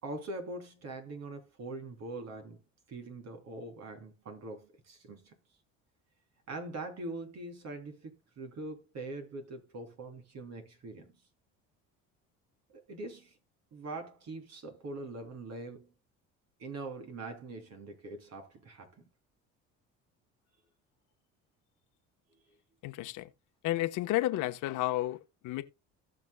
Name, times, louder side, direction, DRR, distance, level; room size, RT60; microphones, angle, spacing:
voice 1, 0.0-2.6 2.9-5.3 6.5-11.2 12.7-13.4 13.7-15.9 16.6-19.0, right 2 dB, 55° right, 3.4 m, -43 dB
voice 2, 22.8-23.3 23.6-25.6, left 15 dB, 75° left, 1.2 m, -32 dB
18.0 x 6.2 x 2.3 m
supercardioid pair, 90°, 31 cm